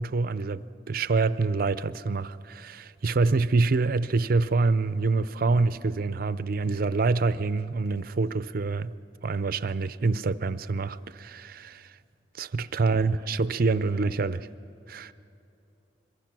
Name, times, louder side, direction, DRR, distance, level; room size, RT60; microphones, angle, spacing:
voice 1, 0.0-8.9 9.2-11.9 12.4-14.4 14.9-15.1, right 3 dB, 55° right, 0.6 m, -26 dB
voice 2, 12.8-13.4 13.6-14.5, equal, 20° right, 5.3 m, -54 dB
25.5 x 22.5 x 6.1 m
head